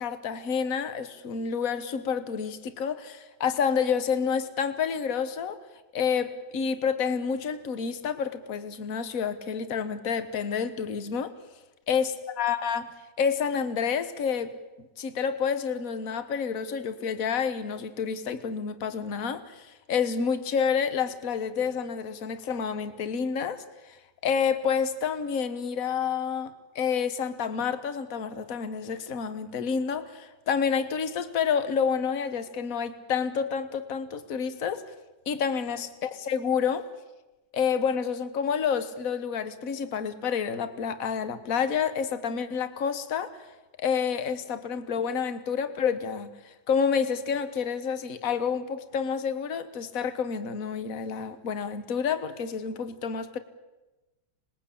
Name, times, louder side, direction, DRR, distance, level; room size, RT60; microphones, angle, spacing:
voice 1, 0.0-5.6 5.9-11.3 11.9-12.1 12.4-12.9 13.2-14.5 15.0-23.6 24.2-34.8 35.3-36.9 37.5-43.4 43.8-46.3 46.7-53.4, left 6 dB, 50° left, 11 dB, 1.6 m, -29 dB
25.5 x 20.5 x 8.6 m, 1.1 s
omnidirectional pair, 1.9 m